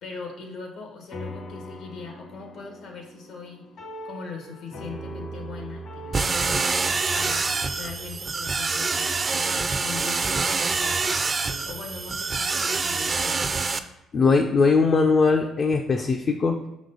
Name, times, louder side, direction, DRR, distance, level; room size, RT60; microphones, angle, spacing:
voice 1, 0.0-3.6 4.0-13.6, left 4 dB, 80° left, 2 dB, 1.6 m, -40 dB
sound 1, 1.1-9.8, equal, 65° left, 1.6 m, -41 dB
sound 2, 6.1-13.8, right 4 dB, 35° right, 0.5 m, -26 dB
voice 2, 14.1-16.6, left 4 dB, 45° left, 3 dB, 0.6 m, -20 dB
5.9 x 5.1 x 4.0 m, 0.95 s
cardioid pair, 80°, 0 cm